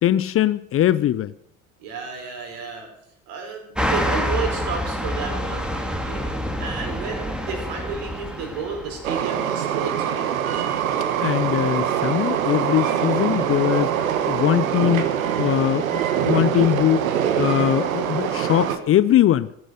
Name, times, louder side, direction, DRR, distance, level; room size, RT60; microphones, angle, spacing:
voice 1, 0.0-1.3 11.2-13.9 14.3-15.1 15.4-17.1 17.4-19.5, left 12 dB, 35° left, 17 dB, 0.6 m, -21 dB
voice 2, 1.8-2.9 3.3-6.3 6.6-10.5, right 5 dB, 60° right, 3 dB, 5.2 m, -32 dB
sound 1, 3.7-9.2, equal, ahead, 2.3 m, -27 dB
Train, 9.0-18.8, right 9 dB, 75° right, 1.5 m, -23 dB
14.5 x 11.0 x 7.8 m, 0.76 s
figure-of-eight pair, 70°, 41 cm